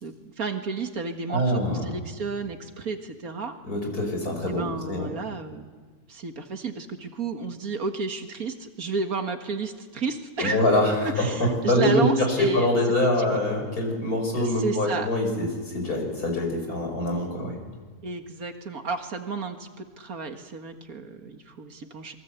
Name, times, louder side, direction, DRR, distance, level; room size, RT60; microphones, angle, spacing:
voice 1, 0.0-3.6 4.5-5.7 6.1-10.6 11.0-12.7 14.4-15.1 18.0-22.1, right 4 dB, 70° right, 6 dB, 2.2 m, -32 dB
voice 2, 1.3-1.9 3.6-5.1 10.4-17.6, left 1 dB, 80° left, 3 dB, 6.4 m, -24 dB
27.0 x 22.5 x 8.3 m, 1.4 s
omnidirectional pair, 1.6 m